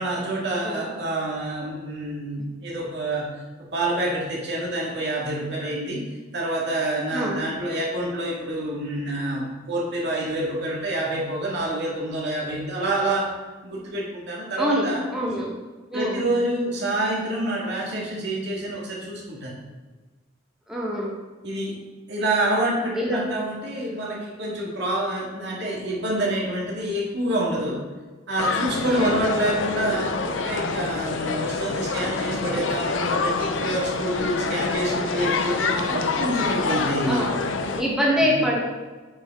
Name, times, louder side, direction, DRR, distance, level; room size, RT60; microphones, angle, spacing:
voice 1, 0.0-3.4 3.7-6.0 6.3-13.3 13.6-15.0 15.9-19.5 21.4-21.7 22.1-27.8 28.3-37.3 38.1-38.3, right 1 dB, 65° right, -3 dB, 2.0 m, -27 dB
voice 2, 14.6-15.5 15.9-16.2 20.7-21.1 22.9-23.2 28.8-29.1 37.0-37.3 37.7-38.6, equal, 5° right, -4 dB, 1.2 m, -24 dB
sound 1, 28.4-37.8, left 4 dB, 85° left, 0.6 m, -26 dB
8.6 x 5.0 x 3.7 m, 1.3 s
head